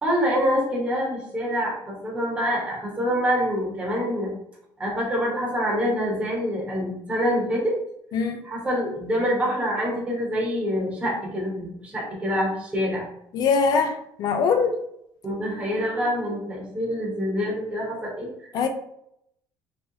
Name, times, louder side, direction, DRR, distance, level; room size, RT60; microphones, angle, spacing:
voice 1, 0.0-4.3 4.8-7.7 8.4-13.1 15.2-18.3, equal, 15° right, 1.0 m, -26 dB
voice 2, 13.3-14.8 18.5-18.7, left 5 dB, 50° left, 0.5 m, -22 dB
3.1 x 3.0 x 2.7 m
cardioid pair, 150°, 9 cm